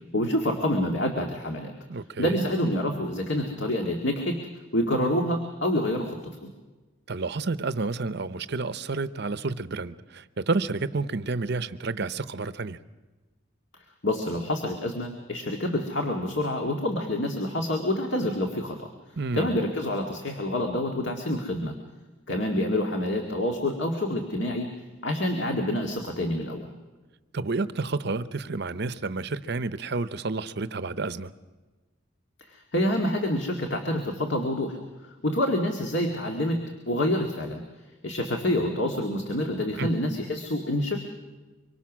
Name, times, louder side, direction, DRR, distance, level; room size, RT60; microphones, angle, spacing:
voice 1, 0.1-1.7 2.2-4.4 4.7-6.5 14.0-18.9 19.3-21.7 22.3-24.7 25.0-26.7 32.5-34.8 35.2-36.6 36.9-37.6 38.0-41.0, left 1 dB, 55° left, 1.9 m, -27 dB
voice 2, 1.9-2.5 7.1-12.8 19.2-19.6 27.3-31.3 39.8-39.9, right 3 dB, 50° right, 0.7 m, -30 dB
24.5 x 24.0 x 6.2 m
head